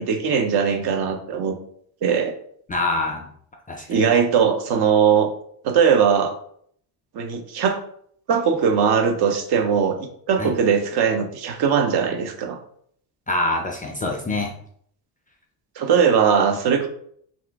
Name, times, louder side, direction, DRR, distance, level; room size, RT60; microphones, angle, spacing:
voice 1, 0.0-1.5 2.0-2.3 3.9-5.3 5.6-6.3 7.1-7.8 8.3-12.6 15.8-16.9, right 7 dB, 55° right, 6 dB, 0.7 m, -20 dB
voice 2, 2.7-3.3 3.7-3.9 10.4-10.5 13.3-14.5, left 2 dB, 20° left, 1 dB, 0.3 m, -25 dB
2.8 x 2.4 x 3.4 m, 0.63 s
cardioid pair, 100°, 46 cm